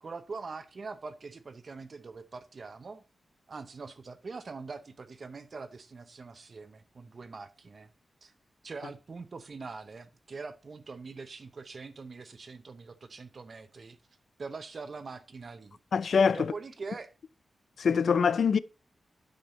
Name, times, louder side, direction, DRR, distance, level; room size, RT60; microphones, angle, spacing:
voice 1, 0.0-3.0 3.5-7.9 8.2-8.3 8.6-14.0 14.4-15.8 16.3-17.1, right 4 dB, 50° right, 0.7 m, -43 dB
voice 2, 15.9-16.5 17.8-18.6, left 6 dB, 75° left, 0.4 m, -24 dB
8.9 x 5.3 x 4.0 m
wide cardioid pair, 110°, 0 cm